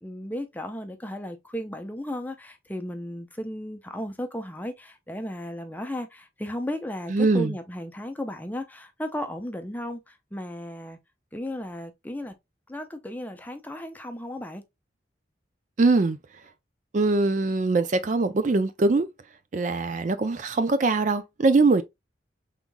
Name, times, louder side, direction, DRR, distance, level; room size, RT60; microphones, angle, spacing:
voice 1, 0.0-11.0 11.3-12.3 12.7-14.6, left 1 dB, 10° left, 0.5 m, -35 dB
voice 2, 7.1-7.5 15.8-16.2 16.9-19.1 19.5-21.8, right 3 dB, 40° right, 0.4 m, -22 dB
5.5 x 3.6 x 2.2 m
head